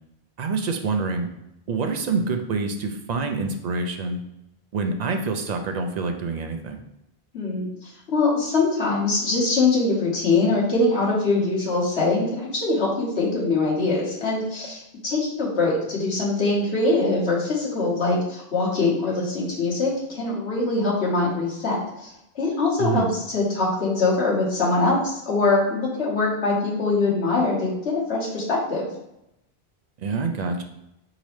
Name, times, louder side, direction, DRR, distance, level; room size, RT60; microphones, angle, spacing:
voice 1, 0.4-1.3 1.7-4.2 4.7-6.8 22.8-23.1 30.0-30.6, right 4 dB, 55° right, 5 dB, 0.5 m, -26 dB
voice 2, 7.3-28.9, left 3 dB, 90° left, -5 dB, 1.6 m, -23 dB
4.1 x 3.8 x 3.1 m, 0.84 s
omnidirectional pair, 1.1 m